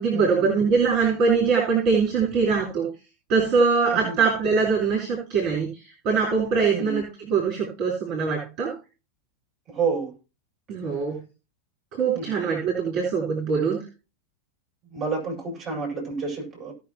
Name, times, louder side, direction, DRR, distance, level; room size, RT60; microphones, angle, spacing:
voice 1, 0.0-2.9 3.3-8.7 10.7-11.2 11.9-13.8, right 5 dB, 40° right, -2 dB, 4.0 m, -23 dB
voice 2, 9.7-10.1 12.1-12.4 14.9-16.7, right 4 dB, 25° right, -1 dB, 6.3 m, -29 dB
17.5 x 6.3 x 3.0 m, 0.31 s
figure-of-eight pair, 90°, 0 cm